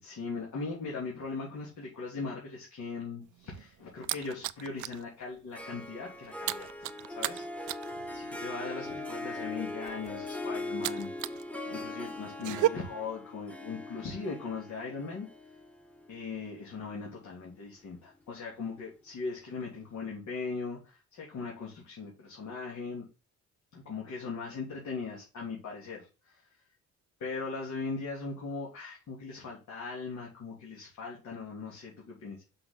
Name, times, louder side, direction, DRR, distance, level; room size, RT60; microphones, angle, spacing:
voice 1, 0.0-11.4 11.7-15.3 16.1-23.0 23.7-26.6 27.2-32.4, left 4 dB, 70° left, -3 dB, 3.0 m, -39 dB
sound 1, 3.2-5.0 5.4-5.6 5.9-11.4 11.7-12.7, right 16 dB, 80° right, 0.5 m, -34 dB
Harp, 5.5-17.0, left 2 dB, 5° left, 1.3 m, -40 dB
6.5 x 5.9 x 3.9 m, 0.30 s
cardioid pair, 90°, 30 cm